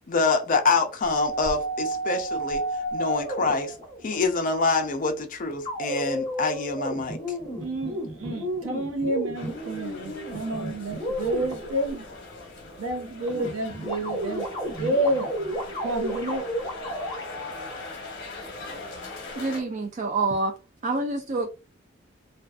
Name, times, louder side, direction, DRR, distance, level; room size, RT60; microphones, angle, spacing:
voice 1, 0.0-2.6 2.9-3.7 4.0-7.2, left 4 dB, 40° left, 0.5 m, -25 dB
sound 1, 1.0-4.1 5.6-12.1 13.3-17.8, right 1 dB, 15° left, 0.9 m, -32 dB
voice 2, 7.6-12.0 12.8-15.3 15.8-16.5, right 1 dB, 90° right, 0.8 m, -29 dB
sound 2, 9.3-19.6, left 2 dB, 60° left, 0.9 m, -41 dB
voice 3, 19.4-20.5 20.8-21.5, right 3 dB, 35° right, 0.4 m, -27 dB
2.5 x 2.3 x 2.3 m
head